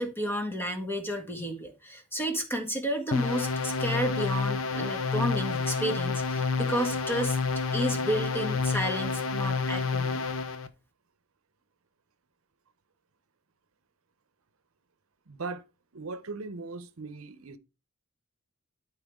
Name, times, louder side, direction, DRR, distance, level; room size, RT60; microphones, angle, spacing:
voice 1, 0.0-7.4 7.7-10.2, equal, 10° left, 1.6 m, -31 dB
sound 1, 3.1-10.7, left 4 dB, 70° left, 0.8 m, -29 dB
voice 2, 15.3-15.7 15.9-17.6, right 3 dB, 75° right, 0.8 m, -38 dB
12.5 x 4.6 x 3.6 m
head